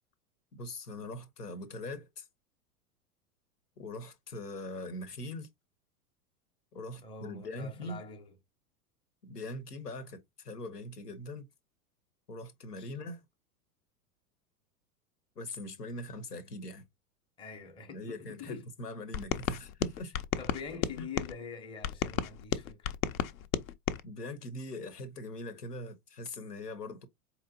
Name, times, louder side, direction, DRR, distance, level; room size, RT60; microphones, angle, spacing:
voice 1, 0.6-2.3 3.8-5.5 6.7-8.0 9.2-11.5 12.3-13.2 15.4-16.9 17.9-20.1 21.0-21.1 24.0-27.1, left 1 dB, 90° left, 0.9 m, -42 dB
voice 2, 7.0-8.3 12.8-13.0 17.4-18.7 20.4-22.9, left 5 dB, 10° left, 0.6 m, -45 dB
sound 1, 19.1-21.3 21.8-24.0, left 9 dB, 65° left, 0.6 m, -33 dB
4.4 x 2.9 x 2.5 m
hypercardioid pair, 95°, 46 cm